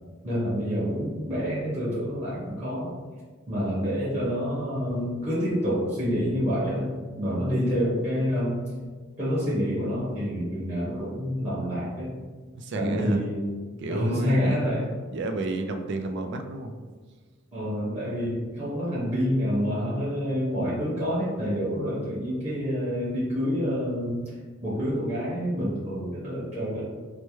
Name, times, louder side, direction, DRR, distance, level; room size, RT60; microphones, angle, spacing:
voice 1, 0.2-2.9 3.5-8.6 9.2-12.1 12.7-13.4 13.9-14.9 17.5-24.3 24.6-26.9, equal, 10° right, -9 dB, 1.3 m, -27 dB
voice 2, 12.5-13.3 13.8-14.6 15.1-16.8, right 2 dB, 60° right, 6 dB, 0.4 m, -30 dB
4.4 x 2.1 x 3.0 m, 1.4 s
head